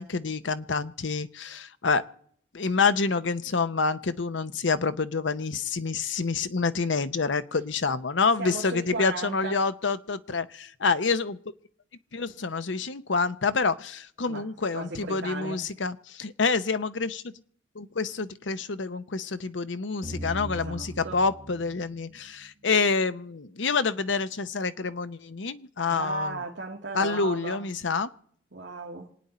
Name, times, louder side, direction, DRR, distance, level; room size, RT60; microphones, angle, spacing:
voice 1, 0.0-2.0 2.5-11.4 12.1-17.3 17.7-26.4 26.9-28.1, left 4 dB, 75° left, 0.8 m, -27 dB
voice 2, 8.4-9.6 14.3-14.5 14.7-15.6 20.5-21.2 25.9-27.6 28.5-29.1, right 2 dB, 65° right, 1.8 m, -36 dB
sound 1, 20.0-23.0, right 1 dB, 35° right, 1.7 m, -39 dB
27.0 x 9.4 x 4.2 m
head